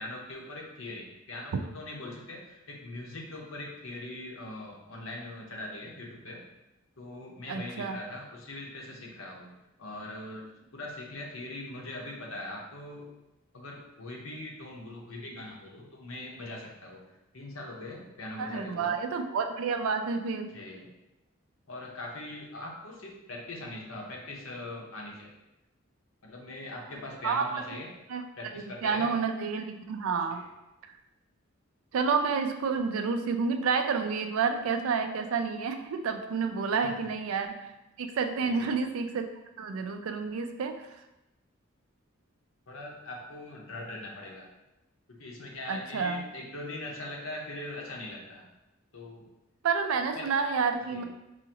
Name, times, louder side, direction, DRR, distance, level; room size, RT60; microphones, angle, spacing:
voice 1, 0.0-6.4 7.0-9.5 9.8-10.5 10.7-13.1 13.5-19.0 20.5-20.9 21.7-25.3 26.2-27.9 28.4-29.2 30.3-30.5 36.8-37.1 38.4-38.7 42.7-44.5 45.1-48.5 48.9-49.2 50.1-50.3 50.9-51.0, left 2 dB, 75° left, -1 dB, 0.8 m, -41 dB
voice 2, 7.5-8.0 18.4-20.5 27.2-27.6 28.1-28.2 28.8-30.4 31.9-37.5 38.0-39.3 39.6-40.8 45.7-46.2 49.6-51.0, right 5 dB, 80° right, 7 dB, 0.4 m, -29 dB
4.8 x 2.5 x 2.8 m, 0.95 s
head